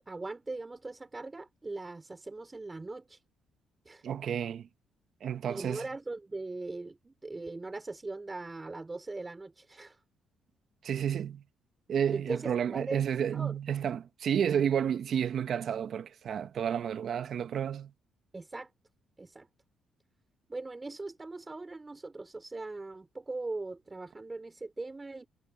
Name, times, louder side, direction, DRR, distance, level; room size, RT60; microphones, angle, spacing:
voice 1, 0.0-3.2 3.8-4.0 5.5-10.0 12.1-13.5 18.3-18.7 19.2-19.5 20.5-25.3, right 3 dB, 20° right, 2.8 m, -40 dB
voice 2, 4.0-4.7 5.2-5.8 10.8-11.4 11.9-17.9, right 8 dB, 60° right, 1.0 m, -31 dB
cardioid pair, 90°, 0 cm